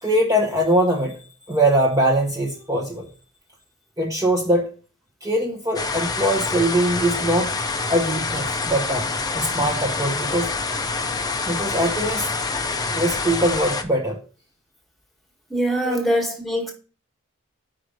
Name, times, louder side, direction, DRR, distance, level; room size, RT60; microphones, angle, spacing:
voice 1, 0.0-1.2 1.5-3.1 4.0-4.7 5.2-7.5 7.9-9.1 9.3-10.5 11.5-12.3 12.9-14.2 15.8-16.0, right 1 dB, 15° right, 0.9 m, -22 dB
sound 1, 5.8-13.8, left 3 dB, 20° left, 0.6 m, -26 dB
voice 2, 15.5-16.7, equal, ahead, 1.5 m, -23 dB
5.1 x 4.9 x 4.8 m
head